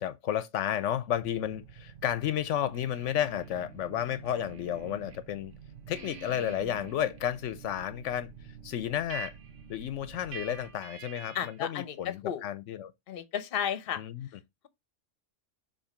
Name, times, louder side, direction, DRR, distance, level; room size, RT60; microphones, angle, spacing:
voice 1, 0.0-5.5 5.9-8.3 8.6-9.3 9.7-12.9 14.0-14.3, left 10 dB, 80° left, 0.9 m, -32 dB
sound 1, 1.1-10.7, right 7 dB, 50° right, 0.9 m, -51 dB
sound 2, 2.7-5.2 5.5-11.7, right 6 dB, 75° right, 1.3 m, -48 dB
voice 2, 11.3-12.4 13.1-14.0, left 9 dB, 55° left, 0.9 m, -33 dB
7.1 x 2.9 x 5.0 m
omnidirectional pair, 1.3 m